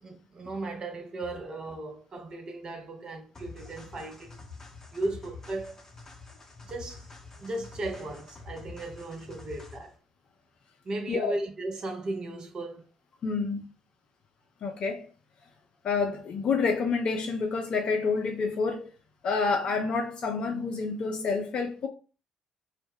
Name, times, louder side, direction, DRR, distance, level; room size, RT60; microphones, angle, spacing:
voice 1, 0.0-4.4 4.9-5.8 6.6-7.1 7.4-9.9 10.8-12.9, right 2 dB, 40° right, 0.6 m, -36 dB
sound 1, 3.3-10.0, left 4 dB, 20° left, 0.7 m, -47 dB
voice 2, 13.2-13.6 14.6-15.1 15.8-18.9 19.2-21.9, left 4 dB, 45° left, 0.3 m, -28 dB
2.1 x 2.0 x 3.4 m
figure-of-eight pair, 45°, 2 cm